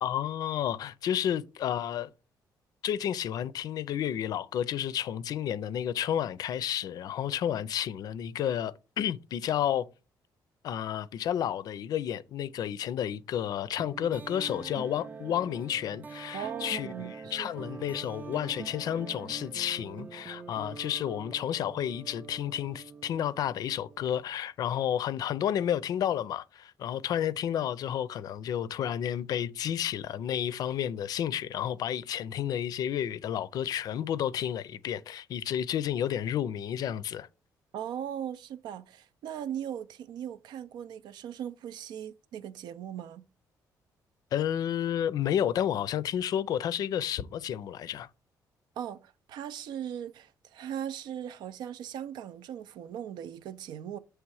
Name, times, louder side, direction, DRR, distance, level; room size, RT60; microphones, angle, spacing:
voice 1, 0.0-2.1 2.8-9.9 10.6-37.3 44.3-48.1, left 10 dB, 60° left, 0.4 m, -31 dB
sound 1, 13.8-24.4, right 5 dB, 25° right, 0.4 m, -44 dB
voice 2, 16.3-17.5 37.7-43.3 48.8-54.0, right 9 dB, 85° right, 0.5 m, -39 dB
7.4 x 3.2 x 4.7 m
cardioid pair, 150°, 7 cm